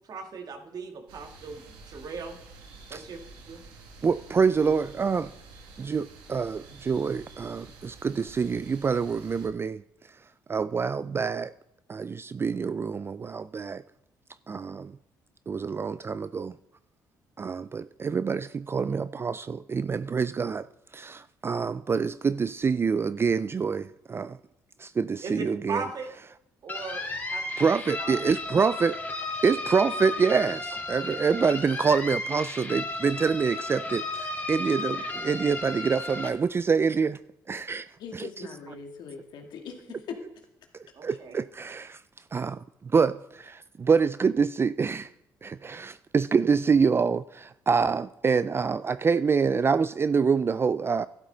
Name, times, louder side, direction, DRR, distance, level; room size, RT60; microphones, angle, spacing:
voice 1, 0.1-2.4 2.9-3.2 3.5-3.6 25.2-26.1 26.6-27.4 28.0-28.2 40.9-41.4, right 4 dB, 55° right, 1.9 m, -38 dB
sound 1, 1.1-9.5, right 3 dB, 85° right, 2.1 m, -49 dB
voice 2, 4.0-5.3 5.8-9.8 10.5-11.5 11.9-13.8 14.5-14.9 15.5-16.5 17.4-20.7 20.9-24.4 24.8-25.8 27.6-29.0 29.4-37.2 37.5-37.9 38.2-38.5 41.0-42.0 42.3-42.6 42.9-45.1 45.4-51.1, right 5 dB, 30° right, 0.3 m, -26 dB
sound 2, 26.7-36.3, left 2 dB, 25° left, 3.4 m, -34 dB
voice 3, 38.0-40.1, left 6 dB, 70° left, 2.0 m, -41 dB
12.0 x 12.0 x 3.9 m
supercardioid pair, 70°, 8 cm